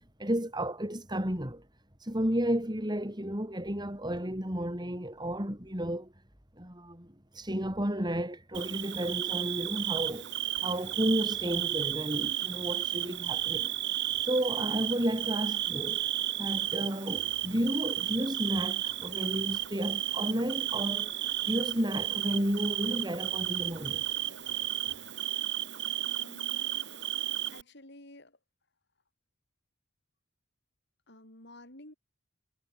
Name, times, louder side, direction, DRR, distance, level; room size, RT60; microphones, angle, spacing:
voice 1, 0.2-1.7 2.0-6.1 6.6-10.3 10.6-13.7 14.2-16.1 16.4-21.1 21.4-24.0, equal, 20° right, 7.5 m, -32 dB
Bird / Cricket, 8.5-27.6, right 13 dB, 60° right, 3.6 m, -33 dB
voice 2, 26.0-26.8 27.5-28.4 31.1-32.0, left 1 dB, 55° left, 7.6 m, -51 dB
head